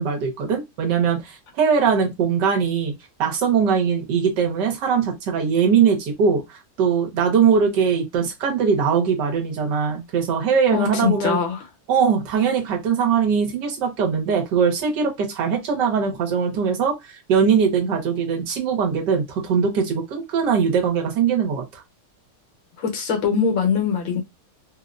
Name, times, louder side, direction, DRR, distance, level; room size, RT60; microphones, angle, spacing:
voice 1, 0.0-2.9 3.2-11.4 11.9-21.8, right 6 dB, 70° right, 1.5 m, -21 dB
voice 2, 10.7-11.6 22.8-24.2, left 6 dB, 90° left, 1.8 m, -22 dB
3.9 x 2.1 x 2.4 m
omnidirectional pair, 2.0 m